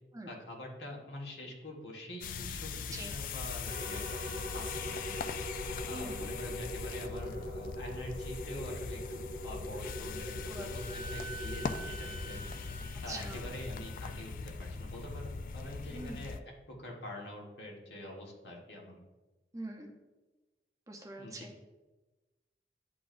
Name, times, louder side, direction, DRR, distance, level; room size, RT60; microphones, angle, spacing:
voice 1, 0.3-5.2 5.9-12.4 13.0-16.4 16.7-19.0 21.2-21.5, left 1 dB, 75° left, -2 dB, 1.5 m, -45 dB
sound 1, 2.2-16.4, left 5 dB, 50° left, 0.3 m, -40 dB
sound 2, 3.6-12.9, equal, 40° right, 0.9 m, -43 dB
voice 2, 5.9-6.4 10.5-11.0 13.1-13.5 15.9-16.3 19.5-20.0 20.9-21.5, right 1 dB, 20° right, 3 dB, 0.6 m, -44 dB
Wind instrument woodwind instrument, 9.8-14.3, right 3 dB, 5° left, 1.0 m, -49 dB
11.0 x 3.9 x 2.6 m, 1.2 s
head